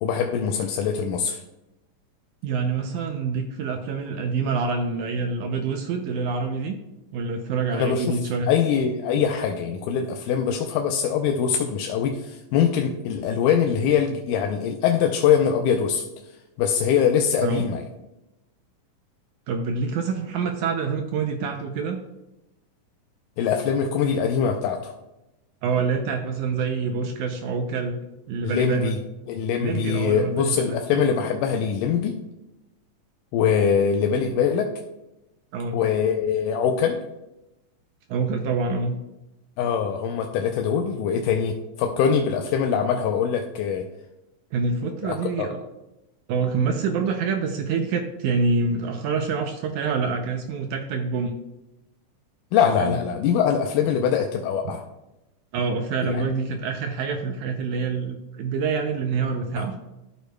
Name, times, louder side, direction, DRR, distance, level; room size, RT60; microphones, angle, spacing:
voice 1, 0.0-1.4 7.7-8.2 8.5-16.0 16.6-17.9 23.4-24.9 28.4-29.0 29.3-32.2 33.3-34.7 35.7-37.0 39.6-43.8 45.0-45.5 52.5-54.8 56.0-56.2 59.6-59.7, left 7 dB, 80° left, 3 dB, 2.1 m, -23 dB
voice 2, 2.4-6.8 7.1-8.5 9.1-9.2 17.4-17.7 19.5-22.0 25.6-28.0 28.3-29.0 29.6-31.0 35.5-35.8 38.1-39.0 44.5-45.6 46.3-51.4 52.8-53.0 55.5-59.7, right 4 dB, 80° right, 5 dB, 1.9 m, -26 dB
13.0 x 6.6 x 2.2 m, 0.95 s
omnidirectional pair, 3.9 m